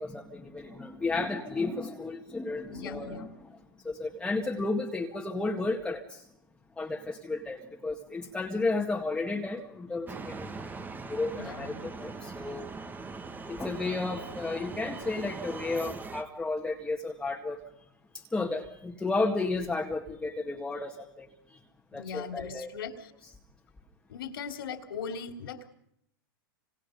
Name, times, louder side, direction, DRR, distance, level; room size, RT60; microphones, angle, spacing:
voice 1, 0.0-3.6 3.8-6.2 6.8-10.5 11.1-12.7 13.5-17.6 18.1-21.6 21.9-22.7, left 3 dB, 5° left, 0 dB, 2.0 m, -33 dB
voice 2, 2.7-3.3 11.3-11.9 21.9-23.1 24.1-25.7, left 6 dB, 75° left, 6 dB, 3.6 m, -39 dB
sound 1, 10.1-16.2, right 4 dB, 15° right, 1.7 m, -41 dB
30.0 x 27.0 x 5.4 m, 0.73 s
hypercardioid pair, 120°, 12 cm